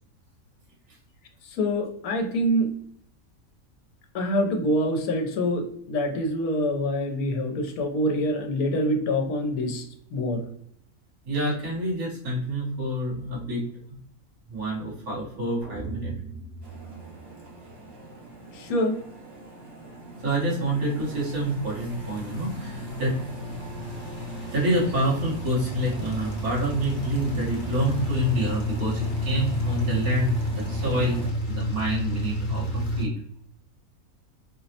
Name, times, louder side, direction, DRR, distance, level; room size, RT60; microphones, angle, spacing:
voice 1, 1.4-2.7 4.1-10.4 18.5-19.0, equal, 80° left, 4 dB, 1.1 m, -26 dB
voice 2, 11.2-13.7 14.5-16.1 20.2-23.2 24.5-31.2 31.5-33.1, right 1 dB, 80° right, -6 dB, 1.8 m, -27 dB
sound 1, 15.6-17.9, right 3 dB, 60° right, 1.4 m, -39 dB
sound 2, 16.6-31.3, equal, 25° right, 0.6 m, -39 dB
sound 3, 21.1-33.1, equal, 50° left, 0.6 m, -31 dB
3.8 x 2.0 x 2.7 m, 0.68 s
omnidirectional pair, 1.6 m